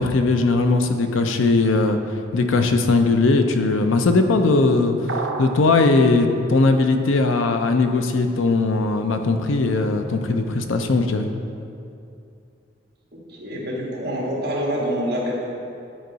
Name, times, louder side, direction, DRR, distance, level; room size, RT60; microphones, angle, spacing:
voice 1, 0.0-2.0 2.3-11.3, left 3 dB, 80° left, 6 dB, 0.5 m, -19 dB
sound 1, 5.1-5.7, right 4 dB, 75° right, 0.6 m, -28 dB
voice 2, 13.3-15.4, equal, 50° right, -3 dB, 1.5 m, -26 dB
9.5 x 4.6 x 4.0 m, 2.6 s
head